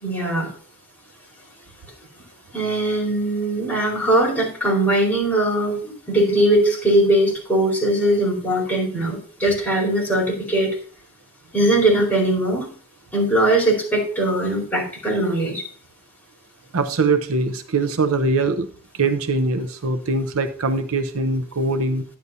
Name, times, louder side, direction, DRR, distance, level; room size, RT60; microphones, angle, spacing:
voice 1, 0.0-0.5 2.5-10.8 11.5-12.7 13.1-15.6, right 1 dB, 10° left, -3 dB, 4.6 m, -20 dB
voice 2, 16.7-18.7 18.9-22.0, right 3 dB, 75° right, 10 dB, 0.7 m, -22 dB
11.0 x 9.5 x 2.7 m, 0.42 s
head